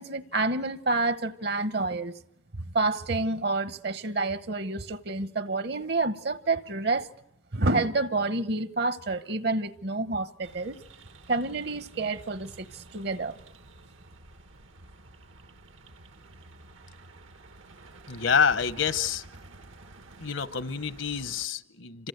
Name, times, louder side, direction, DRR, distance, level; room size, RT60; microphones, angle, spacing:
voice 1, 0.0-2.1 2.7-7.1 7.5-10.8 11.3-13.4, right 3 dB, 55° right, 1.0 m, -28 dB
sound 1, 10.4-21.5, right 2 dB, 80° right, 1.6 m, -50 dB
voice 2, 18.1-19.2 20.2-22.1, left 6 dB, 70° left, 1.0 m, -27 dB
27.5 x 26.0 x 8.0 m
head